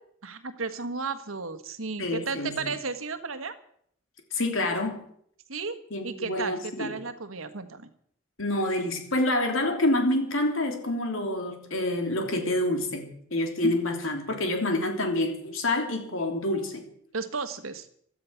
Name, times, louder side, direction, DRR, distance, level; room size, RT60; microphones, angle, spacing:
voice 1, 0.2-3.5 5.5-5.8 6.0-7.9 13.6-13.7 17.1-17.9, right 4 dB, 80° right, 10 dB, 1.5 m, -33 dB
voice 2, 2.0-2.6 4.3-5.0 5.9-6.9 8.4-16.8, left 1 dB, 75° left, 4 dB, 3.2 m, -27 dB
16.5 x 12.5 x 5.8 m, 0.66 s
head